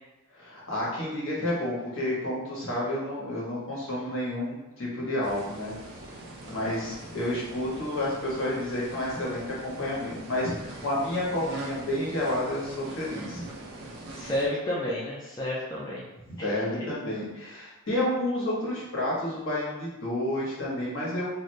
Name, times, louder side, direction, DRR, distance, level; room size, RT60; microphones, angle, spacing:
voice 1, 0.3-5.7 6.5-13.4 16.4-21.3, left 1 dB, 60° left, -6 dB, 1.1 m, -30 dB
sound 1, 5.2-14.5, right 2 dB, 50° right, 0.5 m, -42 dB
voice 2, 6.4-7.0 14.1-16.0 16.4-16.6, left 1 dB, 15° left, -7 dB, 0.4 m, -32 dB
2.7 x 2.6 x 3.2 m, 1.1 s
head